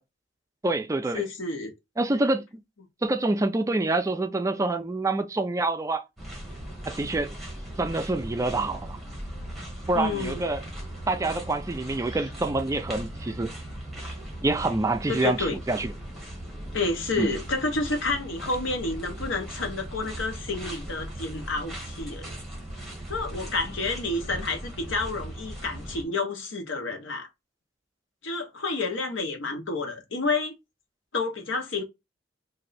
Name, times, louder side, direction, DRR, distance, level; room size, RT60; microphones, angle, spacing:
voice 1, 0.6-1.3 2.0-2.4 3.0-6.0 6.9-7.4 7.8-9.0 9.9-10.6 11.1-13.5 14.4-15.9 17.2-17.3, right 2 dB, 15° right, 0.4 m, -26 dB
voice 2, 1.1-1.7 9.9-10.4 15.1-15.6 16.7-22.3 23.1-27.3 28.2-30.6 31.1-31.8, left 3 dB, 90° left, 1.0 m, -29 dB
sound 1, 6.2-26.0, right 1 dB, ahead, 1.2 m, -38 dB
3.2 x 2.6 x 4.0 m
head